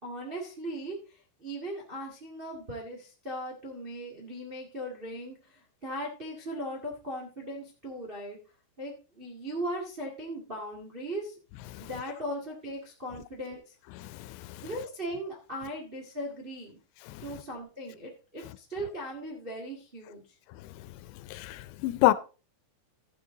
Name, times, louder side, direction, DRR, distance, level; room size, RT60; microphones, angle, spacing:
voice 1, 0.0-1.0 1.4-8.4 8.8-11.3 11.8-13.7 14.6-16.8 17.2-20.2, equal, 45° right, 0.7 m, -38 dB
voice 2, 14.0-14.6 17.1-17.3 21.3-22.1, left 16 dB, 85° left, 2.8 m, -28 dB
14.0 x 6.5 x 3.9 m
omnidirectional pair, 5.0 m